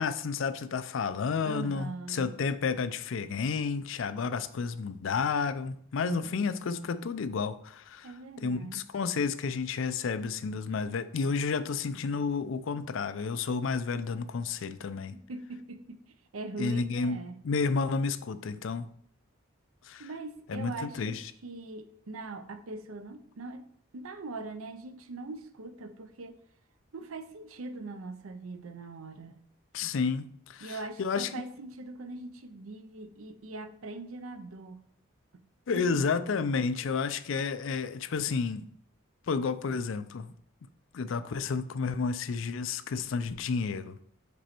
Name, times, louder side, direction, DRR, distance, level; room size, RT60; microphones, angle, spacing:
voice 1, 0.0-8.1 8.4-15.2 16.6-17.2 17.4-18.9 19.8-20.1 20.5-21.3 29.7-31.4 35.7-38.7 39.3-40.3 40.9-44.0, left 5 dB, 65° left, 12 dB, 0.4 m, -31 dB
voice 2, 1.4-2.3 6.0-6.4 8.0-8.9 15.1-16.0 16.3-17.4 20.0-26.4 26.9-29.4 30.6-34.8 35.7-36.0, right 3 dB, 85° right, 10 dB, 0.6 m, -41 dB
5.2 x 4.3 x 4.3 m, 0.63 s
head